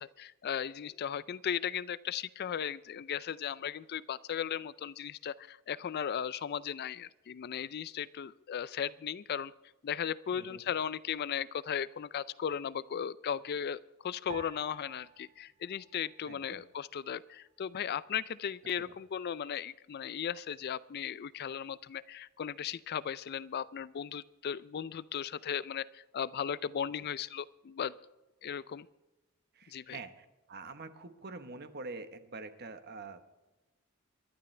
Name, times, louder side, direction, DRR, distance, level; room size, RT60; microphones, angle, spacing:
voice 1, 0.0-9.5 9.8-27.9 28.4-28.9 29.7-30.0, left 8 dB, 50° left, 18 dB, 0.4 m, -36 dB
voice 2, 10.3-10.8 16.3-16.6 18.8-18.9 29.5-33.2, right 3 dB, 50° right, 9 dB, 1.1 m, -46 dB
sound 1, 14.3-16.8 17.1-18.0 18.6-19.0, right 8 dB, 35° right, 0.4 m, -53 dB
26.5 x 12.0 x 3.3 m, 1.1 s
head